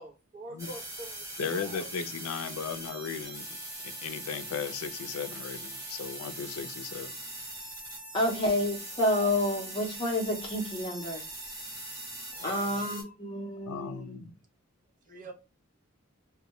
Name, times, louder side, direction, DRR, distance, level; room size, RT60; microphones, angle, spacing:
voice 1, 0.0-1.3 1.5-1.9 15.1-15.3, right 2 dB, 40° right, 0.7 m, -44 dB
sound 1, 0.6-13.0, right 1 dB, 15° right, 1.0 m, -41 dB
voice 2, 1.4-3.4 4.0-7.2 12.4-12.8 13.7-14.3, left 6 dB, 85° left, 0.4 m, -36 dB
voice 3, 8.1-11.2 12.4-14.2, left 1 dB, 25° left, 0.7 m, -29 dB
2.2 x 2.1 x 2.9 m
head